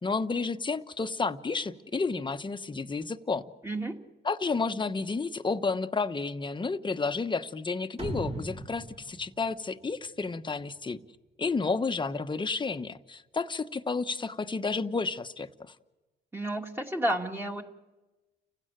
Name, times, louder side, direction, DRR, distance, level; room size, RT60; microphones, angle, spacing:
voice 1, 0.0-3.4 4.2-11.0 11.4-15.5, left 4 dB, 25° left, 8 dB, 1.1 m, -31 dB
voice 2, 3.6-4.0 16.3-17.6, right 1 dB, 10° right, 1 dB, 2.4 m, -31 dB
sound 1, 8.0-10.5, right 2 dB, 35° right, 3.0 m, -39 dB
30.0 x 16.0 x 9.1 m, 1.2 s
cardioid pair, 80°, 19 cm